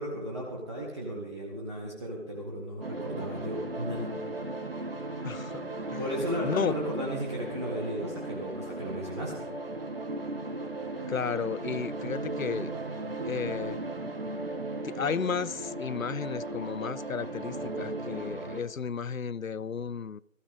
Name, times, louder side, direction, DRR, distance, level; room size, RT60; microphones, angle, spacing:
voice 1, 0.0-4.5 6.0-9.5, equal, 20° right, 1.9 m, -35 dB
sound 1, 2.8-18.6, right 2 dB, 45° right, 1.8 m, -36 dB
voice 2, 5.2-6.0 6.4-6.7 11.1-12.8 13.3-13.8 14.8-20.2, left 6 dB, 85° left, 0.6 m, -33 dB
20.5 x 15.0 x 3.7 m
figure-of-eight pair, 165°, 39 cm